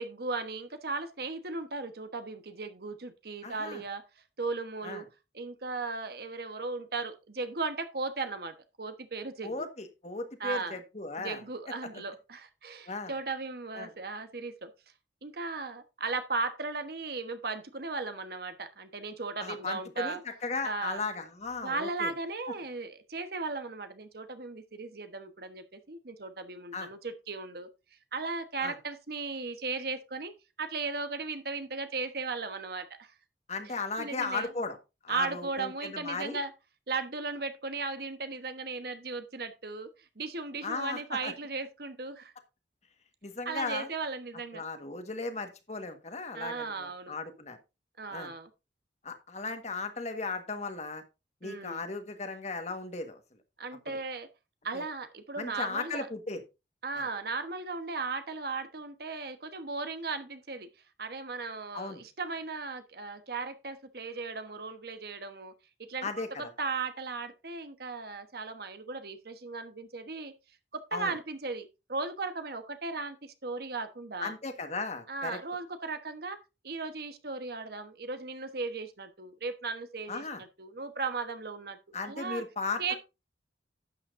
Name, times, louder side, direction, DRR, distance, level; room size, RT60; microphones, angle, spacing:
voice 1, 0.0-4.0 4.4-5.1 5.3-9.5 10.4-10.8 11.2-14.7 15.2-20.2 20.6-21.0 21.6-27.7 28.1-30.3 30.6-33.1 33.6-34.5 35.1-36.5 36.9-42.3 43.4-44.6 46.3-47.2 48.0-48.5 51.4-51.8 53.6-54.3 54.6-56.1 56.8-60.7 61.0-65.5 65.9-70.3 70.7-74.3 75.1-82.4 82.8-82.9, right 3 dB, 60° right, 1.2 m, -36 dB
voice 2, 3.4-3.8 4.8-5.0 9.4-11.4 12.9-13.1 13.7-13.9 19.4-22.1 26.7-26.9 28.6-28.7 33.5-34.8 35.0-36.4 40.6-41.3 43.2-43.9 44.5-47.6 48.1-48.3 49.0-51.0 51.4-53.2 54.7-54.8 55.4-56.4 61.7-62.0 66.0-66.5 70.9-71.1 74.2-75.4 80.1-80.4 81.9-83.0, left 3 dB, 40° left, 1.6 m, -36 dB
12.0 x 8.6 x 2.6 m
head